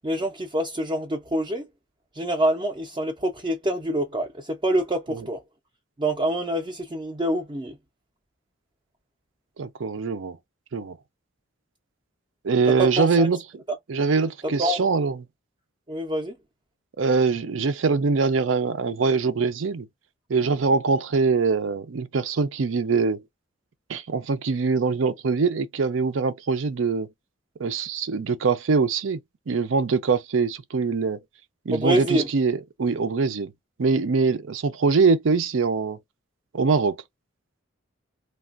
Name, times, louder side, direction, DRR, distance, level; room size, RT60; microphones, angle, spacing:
voice 1, 0.0-1.7 2.1-5.4 6.0-7.8 12.8-13.3 13.7-13.8 14.6-14.8 15.9-16.4 31.7-32.3, right 1 dB, 25° right, 0.5 m, -26 dB
voice 2, 9.6-10.4 10.7-11.0 12.4-13.4 13.9-15.2 17.0-19.9 20.3-23.2 23.9-27.1 27.6-29.2 29.5-31.2 31.7-33.5 33.8-36.0 36.5-37.0, right 4 dB, 80° right, 0.5 m, -23 dB
3.2 x 2.3 x 2.4 m
head